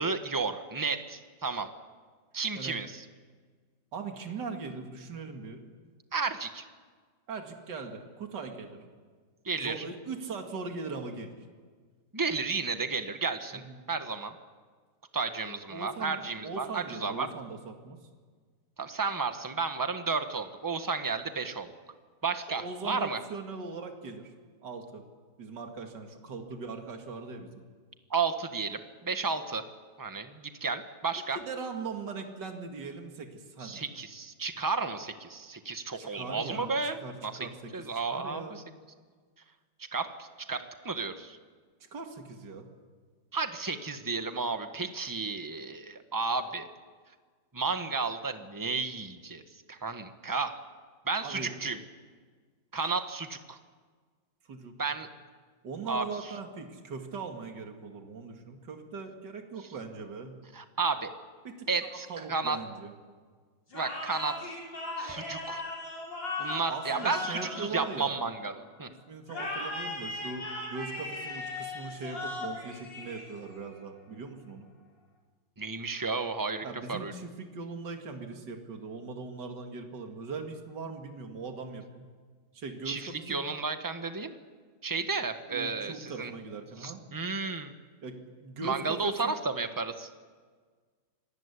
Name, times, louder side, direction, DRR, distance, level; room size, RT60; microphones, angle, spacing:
voice 1, 0.0-1.7 2.3-3.0 6.1-6.6 9.4-9.8 12.1-13.6 13.9-14.3 15.1-17.3 18.8-21.7 22.2-23.2 28.1-29.6 30.0-31.4 33.6-37.3 37.7-38.6 39.9-41.4 43.3-46.7 47.5-49.4 49.7-50.6 51.0-51.8 52.7-53.6 54.8-55.1 55.9-56.3 60.5-61.1 61.7-62.6 63.7-64.5 65.0-65.6 66.4-68.9 75.6-77.1 82.8-84.3 84.8-86.3 86.8-87.7 88.6-90.1, right 4 dB, 10° right, 8 dB, 1.2 m, -32 dB
voice 2, 3.9-5.7 7.3-8.8 9.6-11.4 13.5-13.8 15.7-18.0 22.5-24.3 24.6-25.0 25.4-27.6 31.3-33.8 36.0-36.7 37.0-37.9 38.1-38.6 41.8-42.7 51.2-51.5 54.4-54.7 55.6-60.4 61.4-62.9 66.7-68.2 69.1-74.7 76.6-82.1 82.5-83.5 85.5-87.0 88.0-89.4, right 4 dB, 65° right, 4 dB, 2.7 m, -40 dB
sound 1, 63.7-68.5 69.3-73.7, left 2 dB, 70° left, 6.0 m, -38 dB
25.5 x 19.5 x 8.4 m, 1.5 s
omnidirectional pair, 2.1 m